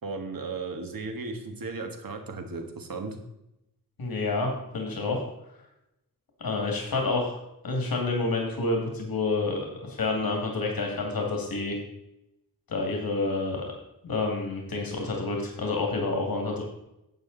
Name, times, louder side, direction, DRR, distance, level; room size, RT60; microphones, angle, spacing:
voice 1, 0.0-3.2, right 3 dB, 75° right, 5 dB, 1.7 m, -35 dB
voice 2, 4.0-5.2 6.4-7.4 7.6-11.8 12.7-13.6 14.0-16.6, left 3 dB, 90° left, 1 dB, 2.3 m, -28 dB
11.0 x 8.2 x 4.0 m, 0.87 s
wide cardioid pair, 135°, 35 cm